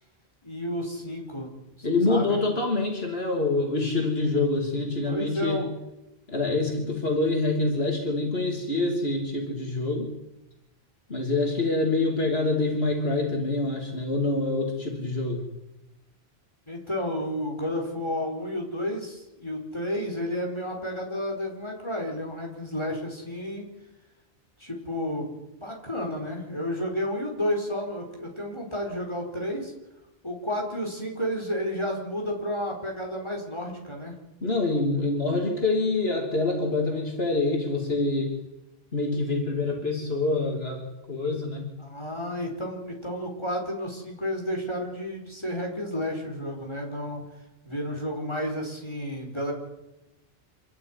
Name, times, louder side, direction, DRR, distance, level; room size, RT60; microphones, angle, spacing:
voice 1, 0.4-1.5 2.1-2.4 5.1-5.7 11.3-11.8 16.7-23.7 24.6-25.4 25.6-29.7 30.2-34.1 41.8-47.2 47.6-49.5, left 1 dB, 25° left, 0 dB, 5.1 m, -31 dB
voice 2, 1.8-5.6 6.3-10.1 11.1-15.5 34.4-38.3 38.9-41.7, left 2 dB, 70° left, 1 dB, 3.3 m, -26 dB
27.0 x 12.5 x 9.9 m, 0.96 s
omnidirectional pair, 1.1 m